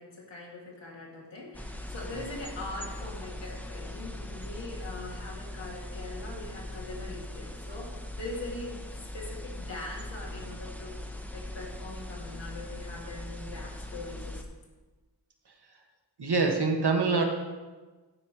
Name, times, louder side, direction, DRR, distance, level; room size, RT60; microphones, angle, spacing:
voice 1, 0.0-8.7 9.1-10.9 11.3-14.4, left 2 dB, 75° left, -3 dB, 2.1 m, -42 dB
sound 1, 1.5-14.4, left 1 dB, 5° left, 0.9 m, -40 dB
voice 2, 16.2-17.2, right 4 dB, 65° right, 2 dB, 1.3 m, -25 dB
11.5 x 4.3 x 4.6 m, 1.3 s
cardioid pair, 40°, 44 cm